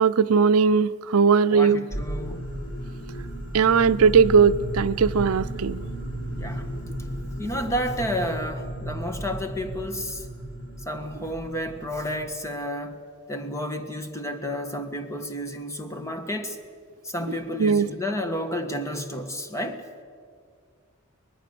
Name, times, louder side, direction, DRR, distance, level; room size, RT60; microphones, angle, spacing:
voice 1, 0.0-1.8 3.5-5.8 17.6-17.9, right 5 dB, 90° right, 0.5 m, -19 dB
voice 2, 1.5-2.5 6.4-6.7 7.4-10.3 10.8-13.0 13.3-16.6 17.0-19.8, equal, 15° left, 1.4 m, -31 dB
sound 1, 1.9-12.4, right 1 dB, 90° left, 4.0 m, -34 dB
24.0 x 20.0 x 6.8 m
head